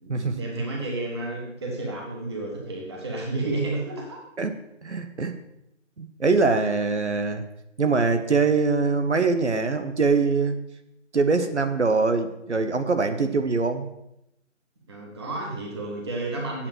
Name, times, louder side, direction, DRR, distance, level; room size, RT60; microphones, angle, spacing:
voice 1, 0.0-4.2 13.0-13.3 14.9-16.7, right 2 dB, 20° right, -1 dB, 1.3 m, -31 dB
voice 2, 4.8-5.3 6.0-7.4 7.8-10.6 11.1-13.9, right 4 dB, 65° right, 8 dB, 1.0 m, -23 dB
8.7 x 6.3 x 6.8 m, 0.84 s
figure-of-eight pair, 160°, 37 cm